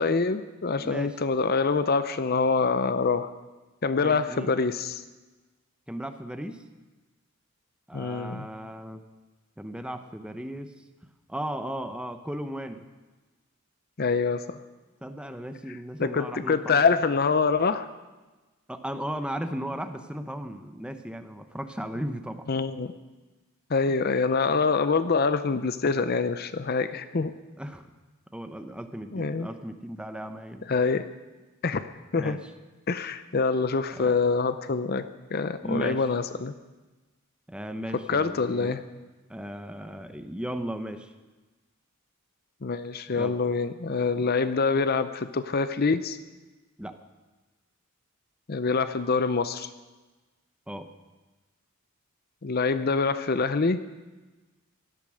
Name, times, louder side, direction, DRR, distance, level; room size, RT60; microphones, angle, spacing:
voice 1, 0.0-3.3 3.8-5.0 7.9-8.5 14.0-14.6 16.0-17.9 22.5-22.9 23.7-27.3 29.1-29.5 30.7-31.1 31.6-31.9 32.1-32.4 32.9-36.5 38.1-38.8 42.6-46.2 48.5-49.7 52.4-53.8, left 4 dB, 45° left, 12 dB, 0.6 m, -25 dB
voice 2, 0.8-1.1 4.0-4.5 5.9-6.6 7.9-9.0 9.6-10.7 11.3-12.8 15.0-16.8 18.7-22.4 27.6-27.9 28.3-30.6 32.1-32.4 34.0-34.1 35.6-36.0 37.5-38.8 39.3-41.1 43.1-43.4 46.8-47.0 50.7-50.9, right 1 dB, 5° right, 8 dB, 0.8 m, -36 dB
17.0 x 12.0 x 6.3 m, 1.2 s
head